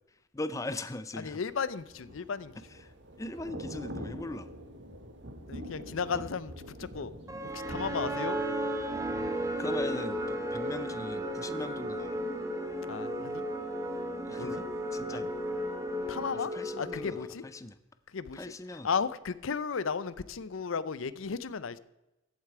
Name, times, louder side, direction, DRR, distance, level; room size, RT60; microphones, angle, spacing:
voice 1, 0.3-1.4 2.8-4.5 6.1-6.2 9.6-12.2 14.2-14.6 14.9-15.3 16.3-17.8 18.3-18.9, left 2 dB, 15° left, 12 dB, 0.4 m, -40 dB
voice 2, 1.2-2.6 5.5-7.1 7.5-8.4 12.9-13.4 14.3-14.6 15.1-15.3 16.1-16.5 16.8-17.4 18.1-21.8, left 5 dB, 85° left, 17 dB, 0.6 m, -34 dB
Thunder / Rain, 1.6-11.6 11.9-12.2, equal, 65° right, 1.4 m, -46 dB
sound 1, 7.3-17.5, equal, 15° right, 1.0 m, -34 dB
14.0 x 8.3 x 4.7 m, 0.97 s
head